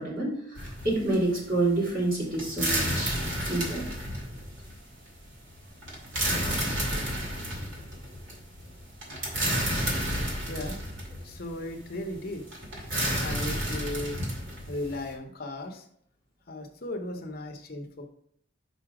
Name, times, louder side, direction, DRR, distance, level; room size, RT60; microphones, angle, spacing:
voice 1, 0.0-3.8, right 2 dB, 45° right, -6 dB, 3.1 m, -28 dB
sound 1, 0.6-15.1, equal, 70° right, 2.2 m, -31 dB
voice 2, 10.5-10.8 11.2-12.4 13.2-14.2 14.7-15.9 16.5-18.1, left 1 dB, 50° left, 4 dB, 0.8 m, -36 dB
5.5 x 4.9 x 4.7 m, 0.66 s
head